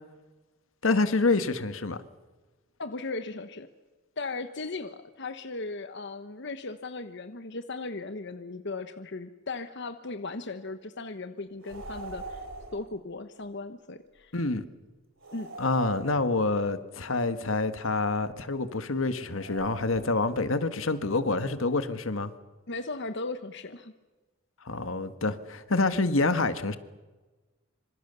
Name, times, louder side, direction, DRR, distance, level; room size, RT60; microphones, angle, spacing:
voice 1, 0.8-2.0 14.3-14.6 15.6-22.3 24.6-26.8, left 3 dB, 75° left, 1.6 m, -27 dB
voice 2, 2.8-3.7 4.2-12.5 12.7-14.3 15.3-15.5 22.7-23.9, left 3 dB, 60° left, 1.2 m, -37 dB
sound 1, 11.6-12.9 15.2-16.6 19.3-20.5, right 3 dB, 65° right, 3.7 m, -42 dB
26.0 x 26.0 x 7.0 m
head